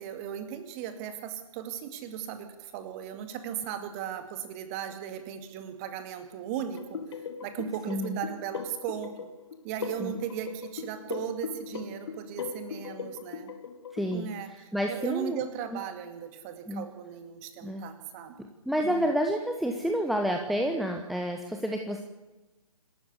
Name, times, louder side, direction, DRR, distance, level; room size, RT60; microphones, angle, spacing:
voice 1, 0.0-7.0 7.4-9.1 9.6-13.5 14.1-18.4 18.8-19.1, right 9 dB, 25° right, 8 dB, 2.3 m, -37 dB
sound 1, 6.7-14.2, left 6 dB, 45° left, 1.8 m, -39 dB
voice 2, 7.9-8.2 10.0-10.1 13.9-14.3 14.7-15.4 16.7-16.8 17.6-17.8 18.7-22.0, equal, ahead, 3 dB, 0.9 m, -29 dB
27.0 x 13.0 x 8.3 m, 1.1 s
figure-of-eight pair, 135°, 19 cm